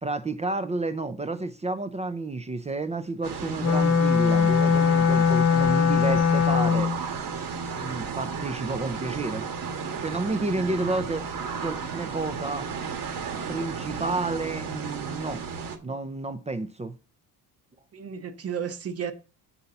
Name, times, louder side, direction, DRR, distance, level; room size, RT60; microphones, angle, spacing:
voice 1, 0.0-6.9 7.7-9.4 10.0-11.2 11.6-12.7 13.5-15.4 15.8-16.9, right 3 dB, 15° right, 0.4 m, -30 dB
sound 1, 3.2-15.8, right 5 dB, 55° right, 1.3 m, -34 dB
Wind instrument woodwind instrument, 3.6-7.0, left 6 dB, 40° left, 1.0 m, -21 dB
voice 2, 17.9-19.1, right 7 dB, 35° right, 0.9 m, -34 dB
7.1 x 4.1 x 6.7 m
cardioid pair, 155°, 41 cm